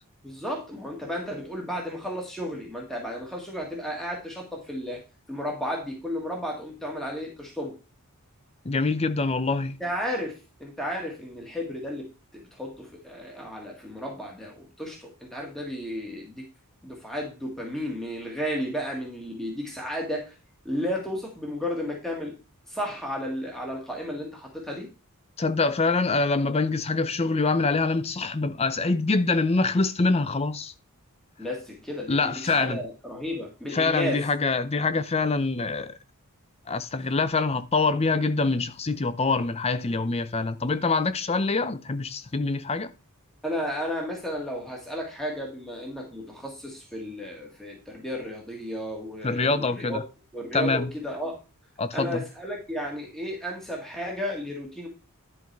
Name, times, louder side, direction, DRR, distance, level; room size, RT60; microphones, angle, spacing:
voice 1, 0.2-5.0 5.3-7.8 9.8-16.4 16.8-20.3 20.7-22.4 22.7-24.9 31.4-34.3 43.4-50.0 50.3-51.4 51.9-54.9, equal, ahead, 1.8 m, -33 dB
voice 2, 8.6-9.7 25.4-30.7 32.1-32.8 33.7-36.0 36.7-42.9 49.2-50.0 50.5-50.9 51.8-52.3, left 3 dB, 30° left, 0.6 m, -25 dB
11.0 x 3.9 x 4.7 m
head